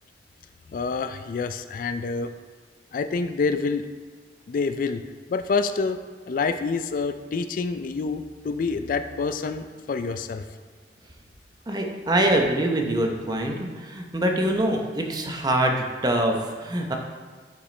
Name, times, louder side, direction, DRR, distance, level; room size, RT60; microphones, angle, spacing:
voice 1, 0.7-2.3 2.9-3.8 4.5-5.0 5.3-6.0 6.3-10.4, left 4 dB, 50° left, 10 dB, 0.3 m, -27 dB
voice 2, 11.7-16.9, right 1 dB, 25° right, 2 dB, 0.8 m, -24 dB
8.0 x 5.9 x 3.2 m, 1.5 s
head